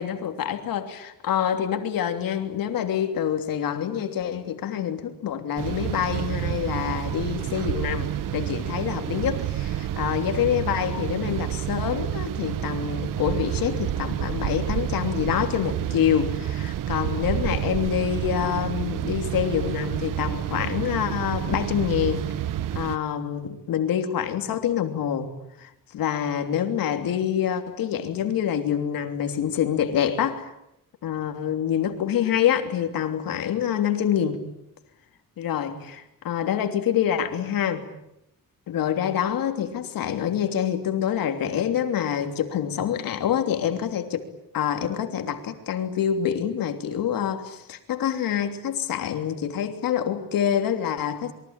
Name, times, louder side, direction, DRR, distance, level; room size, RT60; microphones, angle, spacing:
voice 1, 0.0-22.3 22.7-25.3 25.6-30.5 31.0-34.4 35.4-37.9 38.7-44.3 44.5-51.3, left 9 dB, 85° left, 3.2 m, -26 dB
sound 1, 5.6-23.0, right 11 dB, 70° right, 1.0 m, -29 dB
28.0 x 23.5 x 8.9 m
wide cardioid pair, 170°, 34 cm